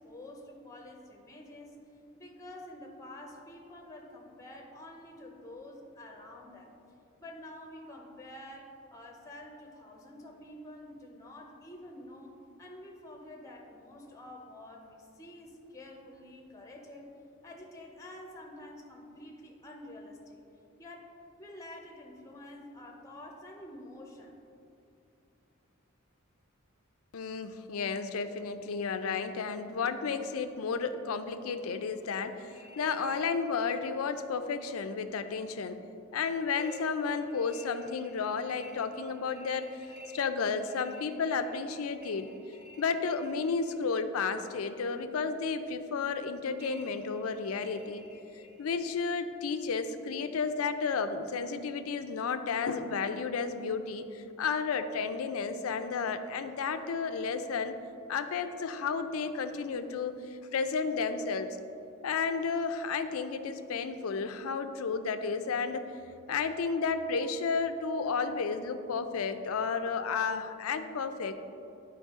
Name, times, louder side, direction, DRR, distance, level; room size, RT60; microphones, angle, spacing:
voice 1, 0.0-1.8 2.2-6.7 7.2-12.3 12.6-17.1 17.4-20.4 20.8-21.1 21.4-24.4, left 1 dB, 15° left, 1 dB, 0.7 m, -48 dB
voice 2, 27.1-35.8 36.1-39.7 40.1-42.3 42.8-48.0 48.6-57.8 58.1-60.2 60.5-61.6 62.0-65.8 66.3-71.3, left 5 dB, 75° left, 9 dB, 0.4 m, -32 dB
sound 1, 32.4-33.9 36.5-43.9 46.6-48.9, equal, 45° right, 0.8 m, -51 dB
10.0 x 4.5 x 3.6 m, 2.7 s
head